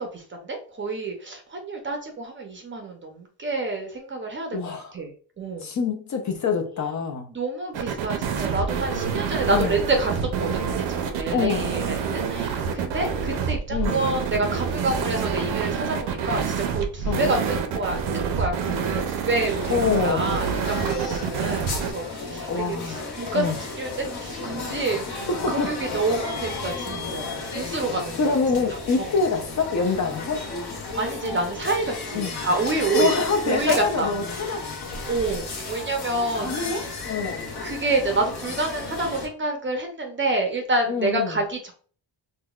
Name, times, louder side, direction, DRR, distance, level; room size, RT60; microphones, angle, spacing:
voice 1, 0.0-4.6 4.9-5.7 7.3-28.3 29.0-29.1 31.0-33.1 33.4-34.1 34.5-34.6 35.1-36.9 37.1-37.3 37.6-41.7, right 2 dB, 30° right, 0.5 m, -28 dB
voice 2, 4.5-4.9 5.6-7.3 9.5-9.7 11.3-11.8 13.7-14.0 17.1-17.3 19.7-20.3 22.5-23.1 23.3-23.6 25.3-25.7 28.2-30.4 32.1-32.3 32.9-34.6 36.3-37.5 40.9-41.4, left 5 dB, 40° left, 0.5 m, -25 dB
sound 1, 7.7-21.9, right 6 dB, 75° right, 0.6 m, -27 dB
sound 2, 19.4-39.3, left 3 dB, 60° left, 1.0 m, -33 dB
3.8 x 2.2 x 2.3 m
cardioid pair, 130°, 43 cm